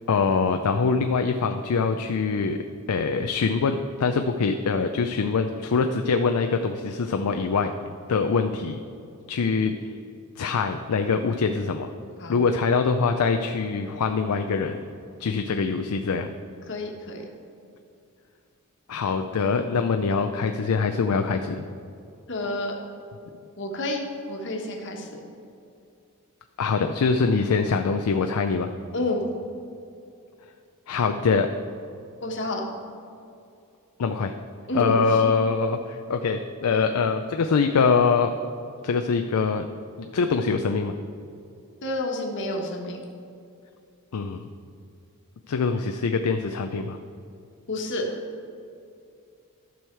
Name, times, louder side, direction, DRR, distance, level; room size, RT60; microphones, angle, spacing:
voice 1, 0.1-2.6 2.9-7.7 8.1-8.8 9.3-9.9 10.4-11.9 12.3-14.8 15.2-16.3 18.9-21.7 26.6-28.7 30.9-31.5 34.0-34.3 34.7-38.4 38.8-39.7 40.0-40.9 44.1-44.4 45.5-47.0, left 5 dB, 85° left, 6 dB, 0.5 m, -24 dB
voice 2, 16.7-17.2 22.3-22.7 23.6-25.2 28.9-29.2 32.2-32.6 34.7-35.0 41.8-43.0 47.7-48.1, left 1 dB, 55° left, 1 dB, 1.3 m, -29 dB
12.0 x 6.3 x 4.6 m, 2.5 s
head